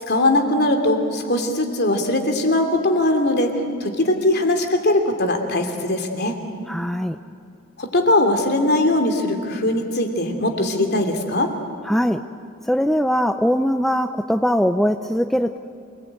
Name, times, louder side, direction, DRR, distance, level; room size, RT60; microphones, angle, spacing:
voice 1, 0.1-6.4 7.8-11.5, left 1 dB, 50° left, 5 dB, 3.0 m, -20 dB
voice 2, 6.7-7.2 11.8-12.2 12.6-15.6, equal, ahead, 8 dB, 0.5 m, -21 dB
27.5 x 20.0 x 9.1 m, 2.5 s
head